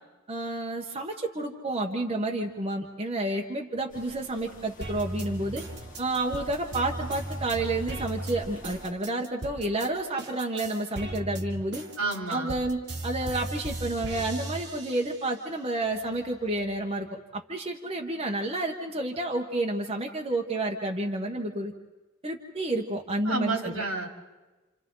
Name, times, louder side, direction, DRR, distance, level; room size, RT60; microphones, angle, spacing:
voice 1, 0.3-5.6 6.0-11.8 12.3-21.7 22.2-23.7, right 2 dB, 30° right, 1 dB, 1.3 m, -30 dB
sound 1, 3.9-8.9, left 1 dB, 40° left, 2.0 m, -48 dB
sound 2, 4.8-9.9 10.2-15.4 15.8-16.8, right 1 dB, 55° right, 2.7 m, -37 dB
voice 2, 12.0-12.5 23.2-24.1, right 3 dB, 75° right, 2 dB, 3.3 m, -30 dB
30.0 x 27.5 x 3.9 m, 1.2 s
head